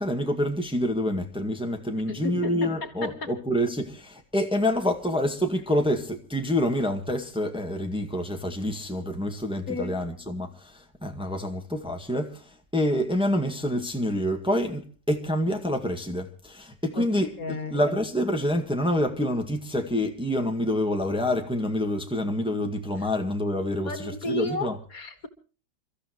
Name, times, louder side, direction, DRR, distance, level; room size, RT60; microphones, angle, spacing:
voice 1, 0.0-24.8, left 1 dB, 5° right, 1.7 m, -27 dB
voice 2, 2.1-3.3 9.7-10.0 17.0-17.9 23.0-23.1 23.9-25.3, left 2 dB, 55° left, 2.1 m, -33 dB
29.0 x 14.0 x 3.0 m
omnidirectional pair, 1.8 m